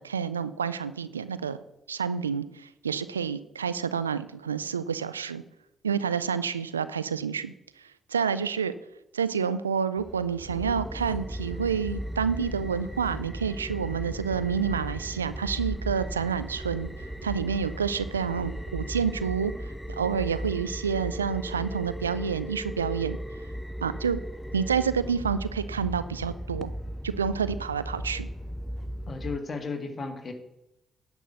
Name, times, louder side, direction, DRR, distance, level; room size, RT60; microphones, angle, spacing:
voice 1, 0.0-1.6 1.9-5.4 5.8-7.5 8.1-8.7 9.1-16.9 17.2-19.7 20.0-23.2 23.8-24.2 24.5-26.7 27.0-28.3, right 6 dB, 90° right, 14 dB, 0.3 m, -29 dB
Train / Engine, 10.0-18.7, right 4 dB, 30° right, 2.4 m, -46 dB
sound 1, 10.4-29.4, equal, 5° left, 0.5 m, -36 dB
voice 2, 29.1-30.3, left 4 dB, 40° left, 6 dB, 1.8 m, -34 dB
10.5 x 6.1 x 6.7 m, 0.88 s
figure-of-eight pair, 40°, 0 cm